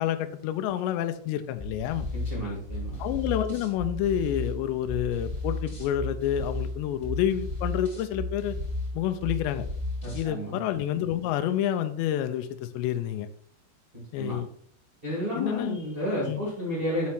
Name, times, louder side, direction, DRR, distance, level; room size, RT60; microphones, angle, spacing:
voice 1, 0.0-2.1 3.0-8.6 8.9-9.6 10.1-13.3 14.1-14.5 15.4-15.8 16.3-16.4, left 11 dB, 85° left, 9 dB, 2.5 m, -28 dB
sound 1, 1.6-10.3, left 1 dB, 15° left, 2.9 m, -34 dB
voice 2, 2.2-3.0 10.0-10.6 14.1-14.4 15.0-17.1, left 1 dB, 45° right, -7 dB, 0.7 m, -31 dB
7.6 x 4.6 x 4.3 m, 0.62 s
omnidirectional pair, 5.7 m